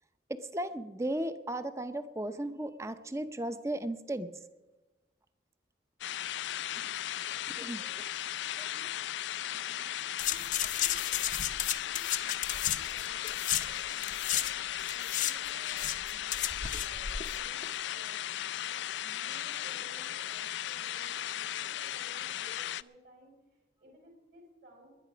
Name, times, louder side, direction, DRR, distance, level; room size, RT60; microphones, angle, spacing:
voice 1, 0.3-4.3 6.7-6.8 7.5-7.8, right 1 dB, 15° right, 11 dB, 0.6 m, -35 dB
sound 1, 6.0-22.8, left 12 dB, 85° left, 0.4 m, -36 dB
voice 2, 7.8-14.6 14.9-16.5 16.8-24.9, equal, 60° right, 0 dB, 5.5 m, -58 dB
sound 2, 10.2-14.5 14.8-17.4 17.6-17.7, left 11 dB, 45° left, 0.6 m, -33 dB
20.0 x 11.0 x 5.1 m, 1.1 s
head